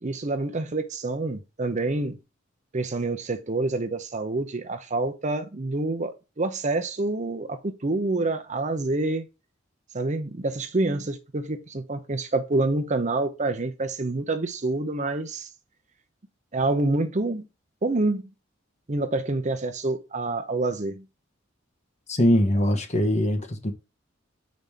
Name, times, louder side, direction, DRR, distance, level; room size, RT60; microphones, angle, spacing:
voice 1, 0.0-2.2 2.7-9.3 9.9-15.5 16.5-17.5 17.8-18.3 18.9-21.0, right 2 dB, 40° right, 0.7 m, -27 dB
voice 2, 22.1-23.7, left 1 dB, 35° left, 1.2 m, -22 dB
6.0 x 5.2 x 3.5 m
head